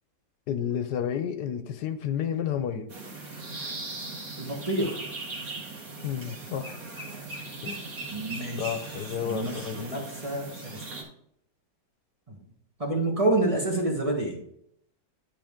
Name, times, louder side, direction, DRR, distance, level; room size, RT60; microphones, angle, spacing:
voice 1, 0.5-2.9 6.0-6.8 7.6-7.9 8.6-9.9, left 8 dB, 80° left, 9 dB, 1.3 m, -31 dB
sound 1, 2.9-11.0, right 3 dB, 55° right, 2.1 m, -39 dB
voice 2, 4.4-5.0 8.1-10.8 12.3-12.4 12.8-14.4, right 2 dB, 20° right, 0 dB, 1.3 m, -29 dB
10.5 x 5.0 x 3.6 m, 0.72 s
omnidirectional pair, 1.8 m